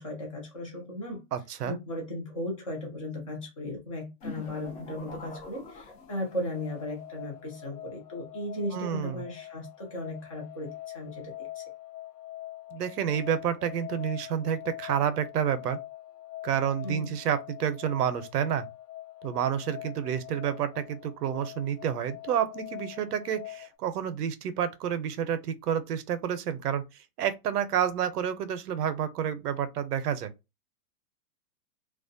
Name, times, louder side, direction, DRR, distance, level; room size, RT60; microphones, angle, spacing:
voice 1, 0.0-1.3 1.6-11.6 16.8-17.1, left 1 dB, 25° left, 0.4 m, -36 dB
voice 2, 1.3-1.8 8.7-9.2 12.7-15.8 16.4-18.7 19.2-30.3, right 9 dB, 80° right, 0.6 m, -29 dB
sound 1, 4.2-6.6, left 3 dB, 40° left, 0.8 m, -44 dB
sound 2, 5.6-23.7, left 14 dB, 80° left, 0.6 m, -44 dB
2.3 x 2.2 x 2.5 m
hypercardioid pair, 165°, 47 cm